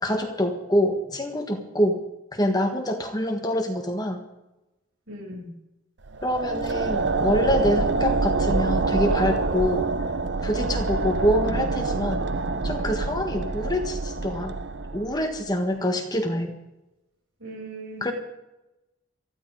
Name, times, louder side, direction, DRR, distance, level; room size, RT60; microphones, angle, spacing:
voice 1, 0.0-2.0 2.3-4.2 6.2-9.9 10.4-12.2 12.6-14.6 14.9-16.5 18.0-18.1, equal, 20° left, 4 dB, 1.7 m, -25 dB
voice 2, 5.1-5.6 17.4-18.1, right 1 dB, 80° right, -1 dB, 7.6 m, -38 dB
sound 1, 6.0-15.4, right 3 dB, 55° right, 0.8 m, -26 dB
23.0 x 15.0 x 3.8 m, 0.95 s
head